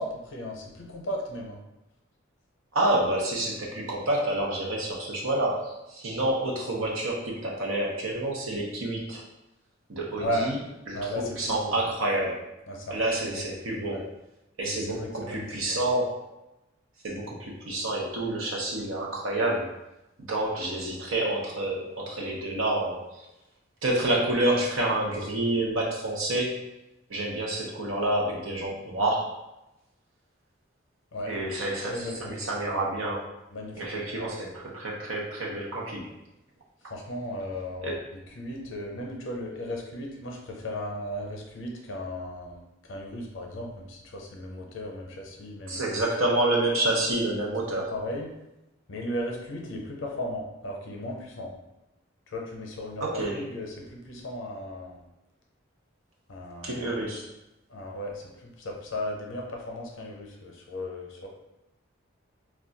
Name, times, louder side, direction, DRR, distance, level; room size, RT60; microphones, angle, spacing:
voice 1, 0.0-1.6 10.2-10.5 10.9-11.8 12.7-13.0 13.3-13.5 13.9-14.0 14.7-15.8 31.1-31.4 31.9-32.2 33.5-33.8 34.1-34.3 36.9-46.0 47.9-48.3 48.9-51.5 52.3-55.0 56.3-56.9 57.7-61.3, left 1 dB, 75° left, 0 dB, 0.6 m, -36 dB
voice 2, 2.7-9.2 9.9-10.6 10.9-12.4 12.9-14.0 14.6-16.2 17.0-19.7 20.3-23.3 23.8-26.6 27.1-29.3 31.3-33.2 33.7-36.1 37.8-38.0 45.7-47.9 53.0-53.4 56.6-57.2, right 1 dB, 85° right, -2 dB, 0.7 m, -28 dB
2.3 x 2.2 x 3.8 m, 0.93 s
head